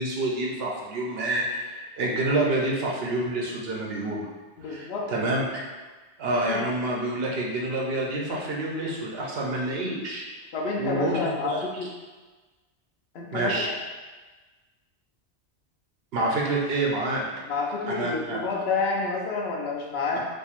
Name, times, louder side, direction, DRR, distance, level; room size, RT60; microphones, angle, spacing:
voice 1, 0.0-4.3 4.6-5.6 6.2-10.2 10.8-11.6 13.3-13.7 16.1-17.2 17.9-18.4, right 2 dB, 65° right, -3 dB, 0.8 m, -27 dB
voice 2, 4.6-5.1 6.5-6.6 10.5-11.9 13.1-13.7 17.4-20.2, left 4 dB, 70° left, -1 dB, 0.8 m, -29 dB
4.3 x 2.6 x 2.4 m, 1.3 s
omnidirectional pair, 1.1 m